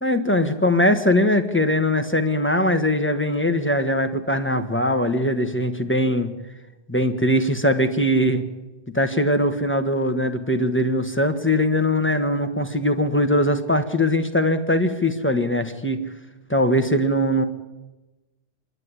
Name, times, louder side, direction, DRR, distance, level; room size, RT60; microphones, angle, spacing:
voice 1, 0.0-6.3 6.9-8.4 8.9-16.0 16.5-17.4, left 1 dB, 10° left, 7 dB, 1.3 m, -21 dB
26.0 x 11.0 x 9.7 m, 1.1 s
omnidirectional pair, 1.2 m